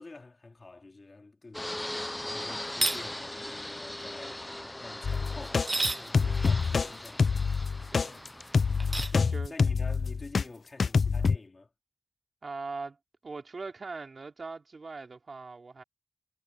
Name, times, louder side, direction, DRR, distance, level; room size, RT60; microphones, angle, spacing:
voice 1, 0.0-4.4 4.7-7.8 9.0-11.7, left 3 dB, 55° left, 3.7 m, -48 dB
Fixed-wing aircraft airplane, 1.5-9.1, left 1 dB, 20° left, 0.8 m, -40 dB
sound 1, 2.7-3.0 5.5-6.0 8.8-9.2, right 2 dB, 40° right, 0.9 m, -29 dB
sound 2, 5.0-10.4 10.8-11.4, left 5 dB, 85° left, 0.7 m, -26 dB
voice 2, 7.9-8.3 9.3-9.5 12.4-13.0 13.2-15.8, right 4 dB, 70° right, 3.4 m, -41 dB
cardioid pair, 40°, 0 cm